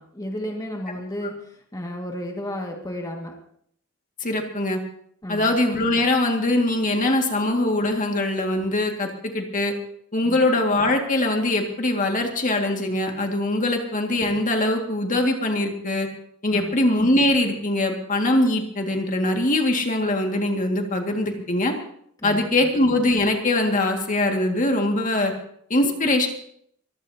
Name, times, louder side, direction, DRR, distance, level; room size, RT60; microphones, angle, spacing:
voice 1, 0.0-3.4 5.2-5.6 10.2-10.5 16.5-16.8 22.2-22.7, equal, 15° left, 0 dB, 1.9 m, -33 dB
voice 2, 4.2-4.8 5.3-9.7 10.1-16.1 16.4-21.7 22.2-25.3 25.7-26.3, left 1 dB, 40° left, 2 dB, 2.0 m, -22 dB
24.0 x 15.0 x 2.8 m, 0.66 s
head